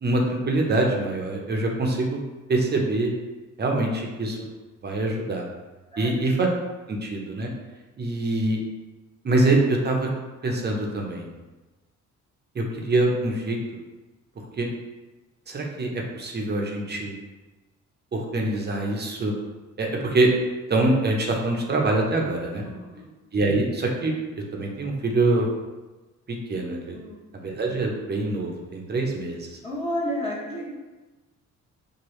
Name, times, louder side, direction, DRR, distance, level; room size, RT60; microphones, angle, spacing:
voice 1, 0.0-2.2 2.5-3.1 3.6-4.5 4.8-5.4 6.0-6.5 6.9-7.5 8.0-8.6 9.2-10.1 10.4-11.3 12.5-13.6 14.6-14.7 15.5-17.1 18.1-19.3 19.8-20.3 20.7-22.6 23.3-24.1 24.5-25.5 26.3-27.0 27.4-29.5, right 2 dB, 35° right, 0 dB, 0.7 m, -24 dB
voice 2, 5.9-6.4 22.6-23.1 26.9-27.3 29.6-30.7, equal, 20° left, -7 dB, 0.9 m, -32 dB
4.6 x 2.3 x 3.1 m, 1.2 s
cardioid pair, 90°, 30 cm